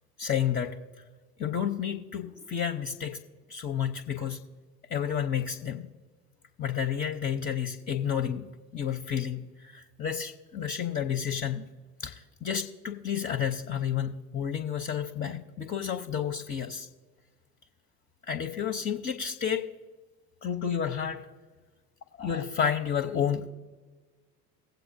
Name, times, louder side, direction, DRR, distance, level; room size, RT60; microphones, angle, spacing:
voice 1, 0.2-0.8 1.4-3.2 3.5-4.4 4.9-5.9 6.6-11.7 12.0-16.9 18.2-19.7 20.4-21.3 22.2-23.5, left 8 dB, 20° left, 5 dB, 0.6 m, -31 dB
18.0 x 7.9 x 2.6 m, 1.3 s
figure-of-eight pair, 65°, 48 cm